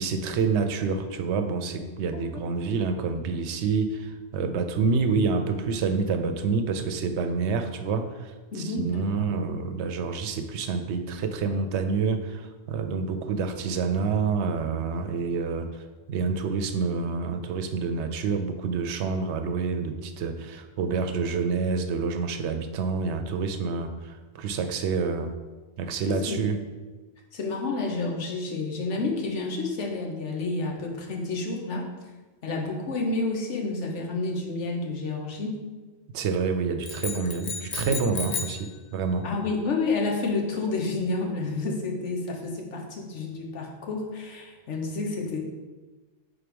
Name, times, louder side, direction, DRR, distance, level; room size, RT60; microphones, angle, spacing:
voice 1, 0.0-15.7 16.1-25.3 25.8-26.6 36.1-39.2, right 5 dB, 75° right, 7 dB, 0.9 m, -28 dB
voice 2, 8.5-9.2 26.1-26.5 27.3-31.9 32.4-35.5 37.9-38.0 39.2-45.4, left 3 dB, 90° left, 1 dB, 1.3 m, -30 dB
sound 1, 36.8-38.7, left 6 dB, 50° left, 0.5 m, -33 dB
4.5 x 4.1 x 5.1 m, 1.3 s
omnidirectional pair, 1.2 m